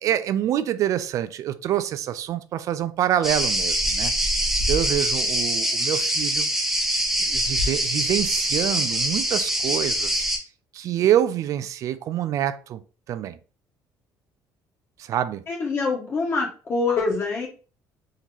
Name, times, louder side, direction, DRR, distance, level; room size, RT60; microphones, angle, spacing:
voice 1, 0.0-4.1 4.7-6.5 7.3-10.2 10.7-12.8 13.1-13.4 15.0-15.4, right 11 dB, 50° right, 0.4 m, -26 dB
sound 1, 3.2-10.4, right 1 dB, 5° right, 0.8 m, -24 dB
voice 2, 15.5-17.5, left 3 dB, 35° left, 1.5 m, -25 dB
3.7 x 3.0 x 4.1 m
cardioid pair, 165°, 7 cm